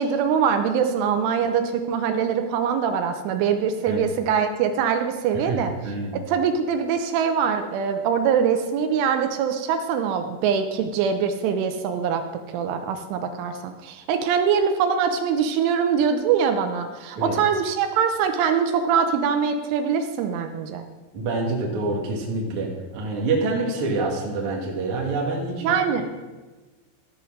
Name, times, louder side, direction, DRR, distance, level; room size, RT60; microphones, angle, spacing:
voice 1, 0.0-5.7 6.1-12.2 12.5-20.8 25.6-26.0, right 7 dB, 80° right, 6 dB, 3.1 m, -23 dB
voice 2, 5.8-6.2 17.2-17.4 21.1-25.8, right 3 dB, 55° right, -2 dB, 1.5 m, -26 dB
14.5 x 5.5 x 6.4 m, 1.2 s
omnidirectional pair, 5.8 m